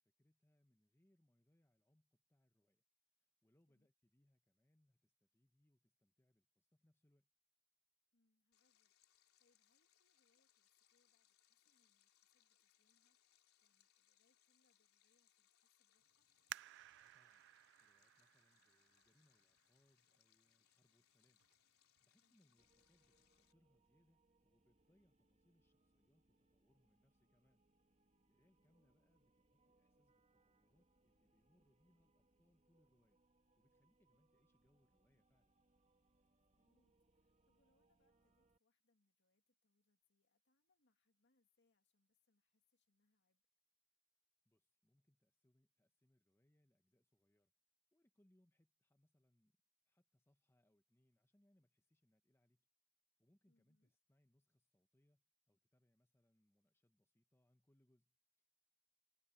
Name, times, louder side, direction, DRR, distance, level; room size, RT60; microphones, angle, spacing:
voice 1, 0.0-2.8 3.2-7.3 16.9-17.5 17.8-27.6 28.1-33.2 33.6-35.6 44.4-47.5 47.9-49.6 49.9-52.7 53.2-58.4, left 1 dB, 10° left, 1.0 m, -80 dB
voice 2, 8.1-16.3 22.2-22.6 28.4-29.0 36.5-43.4 53.5-53.9, left 2 dB, 55° left, 2.3 m, -85 dB
Stream, 8.5-23.5, left 11 dB, 80° left, 3.4 m, -78 dB
sound 1, 16.5-19.9 20.5-20.6 21.2-21.6 22.0-22.1, right 14 dB, 55° right, 0.3 m, -56 dB
sound 2, 22.6-38.6, right 2 dB, 35° right, 3.1 m, -80 dB
head